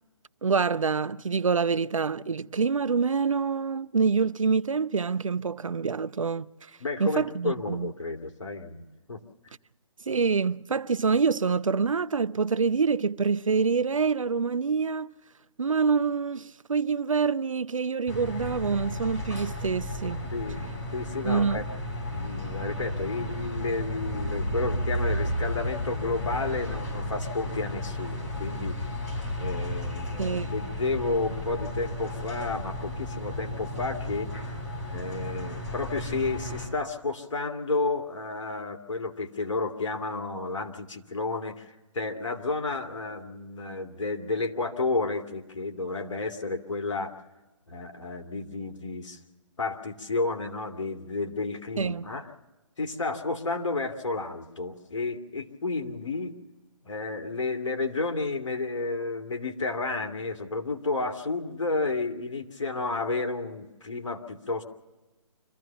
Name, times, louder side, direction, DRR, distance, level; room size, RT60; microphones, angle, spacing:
voice 1, 0.4-6.5 7.0-7.9 10.1-15.1 15.6-20.3 21.2-21.6 30.2-30.5 51.8-52.0, right 5 dB, 85° right, 0.7 m, -26 dB
voice 2, 6.8-8.8 9.1-9.2 20.3-21.6 22.0-28.9 29.3-34.3 34.9-47.2 47.7-49.2 49.6-52.3 52.8-56.3 56.8-64.6, left 3 dB, 70° left, 2.4 m, -31 dB
sound 1, 18.1-36.7, left 1 dB, 30° left, 6.3 m, -33 dB
26.0 x 14.5 x 7.0 m
figure-of-eight pair, 145°, 16 cm